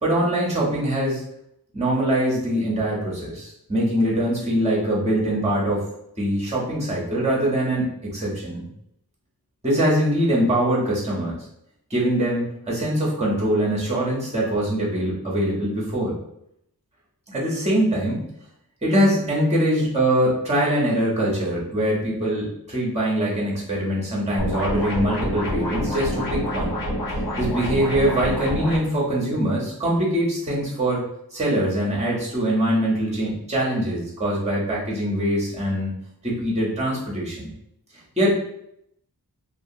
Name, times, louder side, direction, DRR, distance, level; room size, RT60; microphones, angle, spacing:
voice 1, 0.0-1.2 1.7-5.8 6.2-8.7 9.6-11.4 11.9-16.1 17.3-18.2 18.8-26.8 27.4-31.0 31.3-35.9 36.2-37.5 38.2-38.5, right 1 dB, 15° right, -4 dB, 0.9 m, -23 dB
sound 1, 24.4-28.8, equal, 60° left, 1.2 m, -27 dB
2.7 x 2.5 x 2.7 m, 0.75 s
wide cardioid pair, 45°, 39 cm